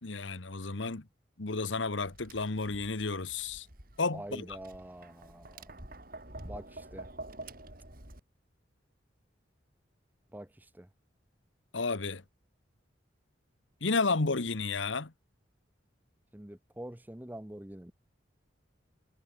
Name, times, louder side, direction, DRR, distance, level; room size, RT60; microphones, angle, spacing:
voice 1, 0.0-1.0 1.4-3.7 4.0-4.6 11.7-12.2 13.8-15.1, left 3 dB, 80° left, 1.3 m, -32 dB
Tap, 2.0-8.2, right 2 dB, 50° right, 7.3 m, -48 dB
voice 2, 4.1-5.7 6.4-7.1 10.3-10.9 16.3-17.9, right 1 dB, 10° right, 0.7 m, -45 dB
head